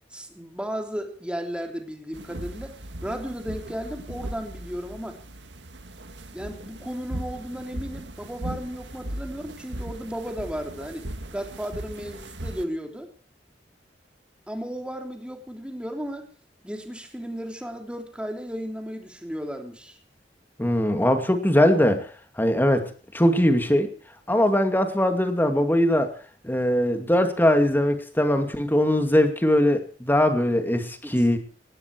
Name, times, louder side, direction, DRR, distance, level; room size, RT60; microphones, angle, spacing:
voice 1, 0.1-2.8 3.0-5.2 6.3-11.0 11.3-13.1 14.5-16.3 16.6-19.9 31.0-31.4, equal, 5° right, 4 dB, 3.4 m, -34 dB
sound 1, 2.1-12.7, right 1 dB, 80° right, 1.9 m, -38 dB
voice 2, 20.6-22.1 22.4-23.9 24.3-26.1 26.4-31.4, left 1 dB, 10° left, 6 dB, 2.5 m, -21 dB
19.0 x 15.5 x 4.7 m, 0.42 s
head